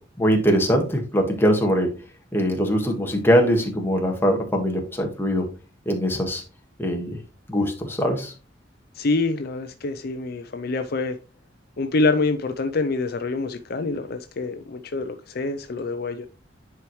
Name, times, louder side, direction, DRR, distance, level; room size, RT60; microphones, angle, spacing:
voice 1, 0.2-1.9 2.3-5.5 5.8-6.4 6.8-7.2 7.5-8.3, equal, 10° left, 1 dB, 1.6 m, -22 dB
voice 2, 8.9-11.2 11.8-16.3, left 3 dB, 55° left, 8 dB, 0.5 m, -26 dB
10.0 x 4.6 x 3.1 m, 0.34 s
head